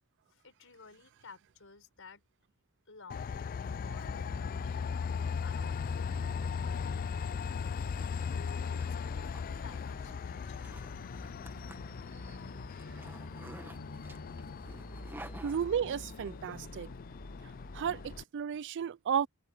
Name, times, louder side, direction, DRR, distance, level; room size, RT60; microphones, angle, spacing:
voice 1, 0.3-2.2 2.9-3.5 3.8-5.0 5.4-7.4 8.2-11.1, left 4 dB, 65° left, 6.0 m, -55 dB
Train, 3.1-18.2, left 6 dB, 40° left, 0.3 m, -38 dB
sound 1, 3.5-18.2, left 1 dB, 85° left, 2.2 m, -48 dB
Zipper (clothing), 7.6-16.3, right 1 dB, 10° right, 1.5 m, -54 dB
voice 2, 15.4-16.9 17.7-19.3, right 8 dB, 55° right, 0.4 m, -33 dB
head